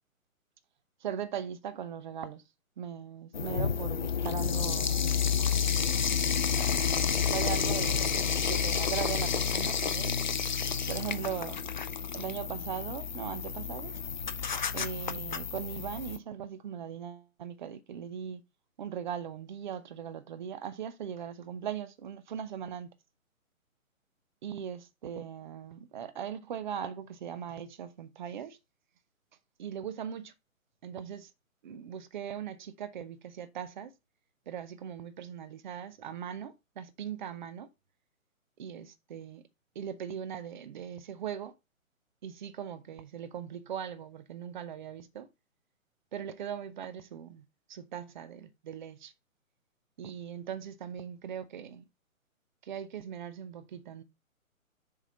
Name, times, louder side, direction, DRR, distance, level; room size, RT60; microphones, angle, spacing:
voice 1, 1.0-2.4 2.8-5.0 6.6-6.8 7.3-8.2 8.5-10.1 10.9-11.6 12.1-13.9 14.7-18.4 18.8-22.9 24.4-28.6 29.6-30.3 30.8-31.3 31.6-33.9 34.5-37.7 38.6-39.4 39.7-41.5 42.2-45.3 46.1-47.4 47.7-49.1 50.0-51.8 52.6-54.0, right 8 dB, 35° right, 0.8 m, -39 dB
sound 1, 3.3-16.2, left 7 dB, 35° left, 0.4 m, -30 dB
6.9 x 3.6 x 5.6 m
figure-of-eight pair, 135°, 41 cm